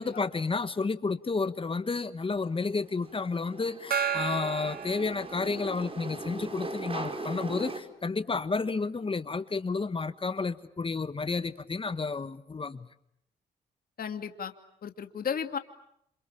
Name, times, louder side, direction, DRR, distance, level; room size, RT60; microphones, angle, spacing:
voice 1, 0.0-12.9, left 4 dB, 30° left, 12 dB, 1.4 m, -31 dB
sound 1, 2.3-7.8, right 2 dB, 35° right, 5.3 m, -39 dB
Gong, 3.9-5.9, right 8 dB, 60° right, 2.0 m, -33 dB
voice 2, 14.0-14.5 14.8-15.6, left 7 dB, 60° left, 7 dB, 2.4 m, -33 dB
28.5 x 27.5 x 7.1 m, 0.73 s
cardioid pair, 70°, 17 cm